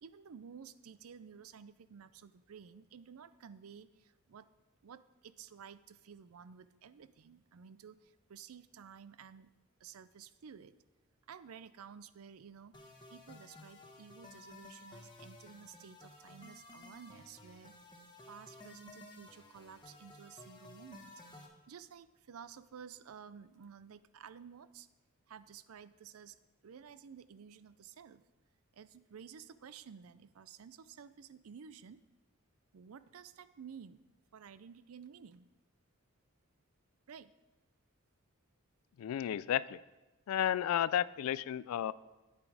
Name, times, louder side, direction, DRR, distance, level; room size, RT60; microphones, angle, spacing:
voice 1, 0.0-4.5 4.8-9.5 9.8-10.7 11.3-17.8 18.3-21.1 21.7-24.9 25.3-26.4 26.6-28.2 28.7-32.0 32.7-34.0 34.3-35.5 37.1-37.3, right 7 dB, 85° right, 15 dB, 0.5 m, -53 dB
sound 1, 12.7-21.5, left 2 dB, 20° left, 1.2 m, -55 dB
voice 2, 39.0-39.8 40.3-41.9, left 10 dB, 85° left, 18 dB, 0.3 m, -32 dB
9.1 x 8.4 x 4.8 m, 1.1 s
head